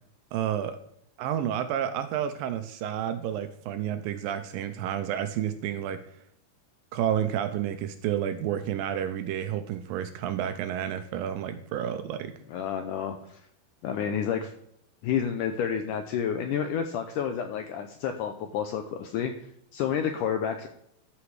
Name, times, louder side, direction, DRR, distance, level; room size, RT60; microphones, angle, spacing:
voice 1, 0.3-0.8 1.2-6.0 6.9-12.3, right 10 dB, 80° right, 9 dB, 2.2 m, -30 dB
voice 2, 12.5-13.4 13.8-14.5 15.0-19.3 19.7-20.7, left 8 dB, 80° left, 7 dB, 1.9 m, -30 dB
13.0 x 6.0 x 4.8 m, 0.73 s
omnidirectional pair, 4.4 m